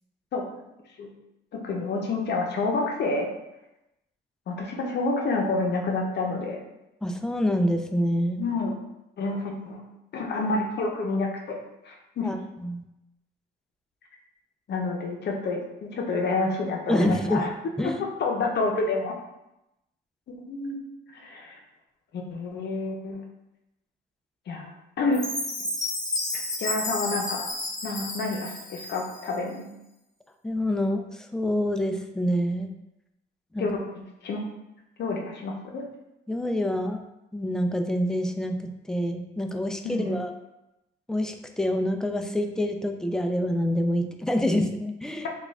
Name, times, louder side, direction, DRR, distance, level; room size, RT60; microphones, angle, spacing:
voice 1, 0.3-0.7 1.0-1.1 1.5-3.3 4.5-6.6 8.4-8.7 9.2-9.8 10.1-11.6 11.9-12.3 14.7-17.5 18.2-19.1 20.4-20.8 21.1-21.6 22.1-23.2 24.5-24.7 25.0-25.2 26.6-27.5 27.8-29.7 33.6-33.8 34.2-34.4 35.0-35.8 39.8-40.2, left 3 dB, 60° left, 1 dB, 0.7 m, -28 dB
voice 2, 7.0-8.4 12.2-12.8 16.9-17.5 17.8-18.0 30.4-32.7 33.5-33.7 36.3-37.0 37.3-40.3 41.1-45.3, equal, 5° left, 4 dB, 0.3 m, -26 dB
Chime, 25.1-29.3, left 2 dB, 20° left, 1.0 m, -32 dB
3.1 x 2.4 x 3.5 m, 0.90 s
cardioid pair, 90°, 20 cm